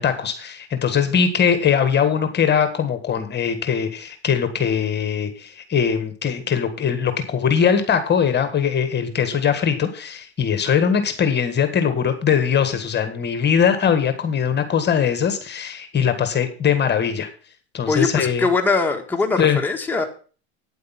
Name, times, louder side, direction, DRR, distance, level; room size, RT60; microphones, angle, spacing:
voice 1, 0.0-17.3 17.7-18.4 19.4-19.6, left 7 dB, 30° left, 9 dB, 1.6 m, -21 dB
voice 2, 17.9-20.1, left 4 dB, 5° left, 1 dB, 1.6 m, -21 dB
9.3 x 8.2 x 5.8 m, 0.39 s
supercardioid pair, 105°, 32 cm